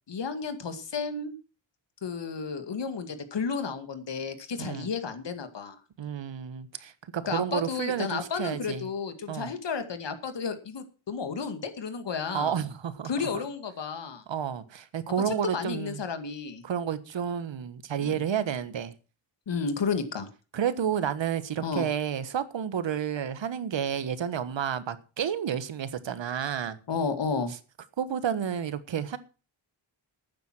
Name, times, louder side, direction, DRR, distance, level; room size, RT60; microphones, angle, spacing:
voice 1, 0.1-1.3 2.0-5.8 7.3-12.6 13.0-14.2 15.3-16.6 18.0-18.2 19.5-20.3 21.6-21.9 26.9-27.5, left 5 dB, 65° left, 2.2 m, -32 dB
voice 2, 4.6-4.9 6.0-8.9 9.3-9.5 12.3-13.3 14.3-16.0 16.6-18.9 20.5-26.8 28.0-29.2, right 8 dB, 70° right, 1.4 m, -30 dB
12.0 x 9.4 x 6.1 m
wide cardioid pair, 115°, 46 cm